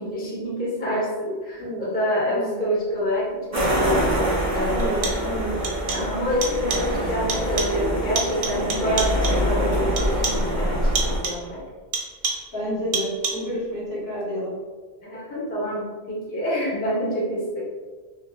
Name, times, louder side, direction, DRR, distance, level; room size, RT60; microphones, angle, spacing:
voice 1, 0.0-5.1 5.9-11.6 15.0-17.6, equal, 10° left, -6 dB, 0.5 m, -27 dB
voice 2, 2.2-2.5 4.7-5.5 12.5-14.6, equal, 65° left, -9 dB, 1.6 m, -29 dB
sound 1, 3.5-11.2, equal, 15° right, 1.2 m, -24 dB
sound 2, 4.8-5.4 5.6-6.2 6.4-7.0 7.3-7.9 8.2-9.5 10.0-10.5 11.0-11.5 11.9-12.6 12.9-13.6, right 4 dB, 65° right, 0.8 m, -30 dB
3.0 x 2.7 x 2.3 m, 1.4 s
omnidirectional pair, 1.2 m